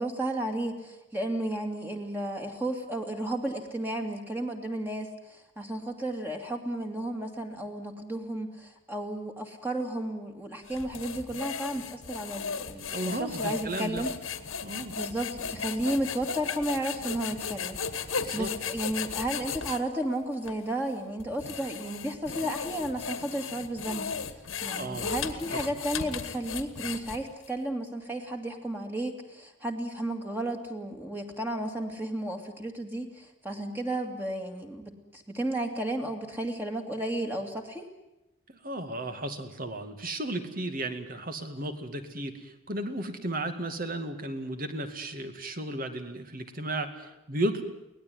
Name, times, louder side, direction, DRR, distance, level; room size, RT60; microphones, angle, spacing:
voice 1, 0.0-14.1 14.9-17.8 18.3-37.9, right 1 dB, 10° right, 2 dB, 2.5 m, -33 dB
sound 1, 10.7-19.8 20.4-20.6 21.2-27.5, left 6 dB, 90° left, 2.0 m, -36 dB
voice 2, 12.9-14.0 14.6-15.0 18.2-18.5 24.8-25.1 25.5-25.6 38.5-47.6, right 1 dB, 45° right, 8 dB, 2.3 m, -34 dB
23.5 x 19.0 x 9.6 m, 0.93 s
head